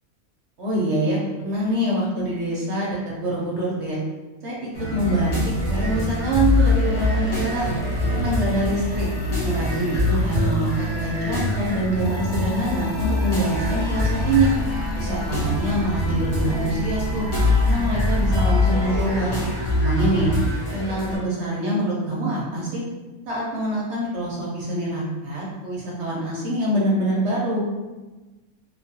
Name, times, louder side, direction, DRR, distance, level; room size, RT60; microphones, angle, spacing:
voice 1, 0.6-4.0 4.4-7.7 8.1-9.1 9.4-14.5 14.9-17.3 17.6-19.3 19.7-20.3 20.7-22.8 23.3-27.7, right 1 dB, 60° right, -5 dB, 0.8 m, -25 dB
sound 1, 4.7-21.2, left 1 dB, 35° left, 0.7 m, -24 dB
sound 2, 5.2-20.3, left 1 dB, 75° left, 1.1 m, -34 dB
2.4 x 2.3 x 2.7 m, 1.2 s
omnidirectional pair, 1.5 m